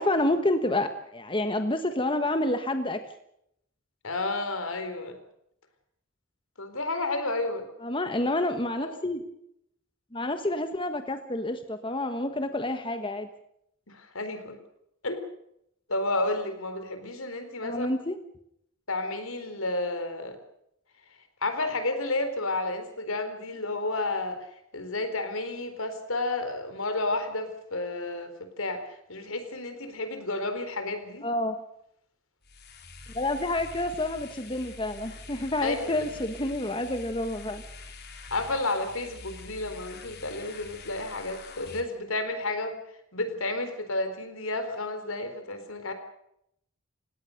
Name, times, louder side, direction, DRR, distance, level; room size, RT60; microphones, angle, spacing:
voice 1, 0.0-3.0 7.8-9.2 10.1-13.3 17.6-18.1 31.2-31.6 33.1-37.6, left 1 dB, 25° left, 8 dB, 1.4 m, -28 dB
voice 2, 4.0-5.2 6.6-7.7 8.8-9.0 13.9-14.6 15.0-15.2 15.9-17.9 18.9-20.4 21.4-24.4 24.7-31.3 35.6-36.2 38.3-42.8 43.1-45.9, left 2 dB, 75° left, 8 dB, 4.2 m, -31 dB
sound 1, 32.4-41.8, left 3 dB, 50° left, 3.9 m, -45 dB
30.0 x 17.5 x 6.6 m, 0.76 s
head